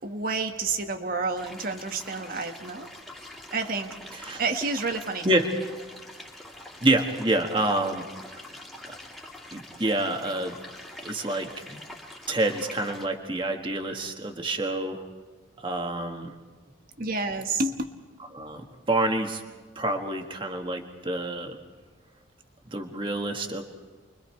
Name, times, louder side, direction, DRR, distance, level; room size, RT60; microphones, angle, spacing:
voice 1, 0.0-2.9 3.5-4.0 4.4-5.3 17.0-17.8, right 3 dB, 45° right, 6 dB, 1.3 m, -29 dB
sound 1, 1.4-13.0, left 1 dB, ahead, 2.2 m, -45 dB
voice 2, 6.8-8.1 9.5-10.6 11.0-11.8 12.3-15.0 15.6-16.3 18.3-18.6 18.9-19.4 19.7-21.6 22.7-23.6, right 2 dB, 25° right, 4 dB, 1.5 m, -27 dB
29.5 x 23.0 x 4.5 m, 1.4 s
head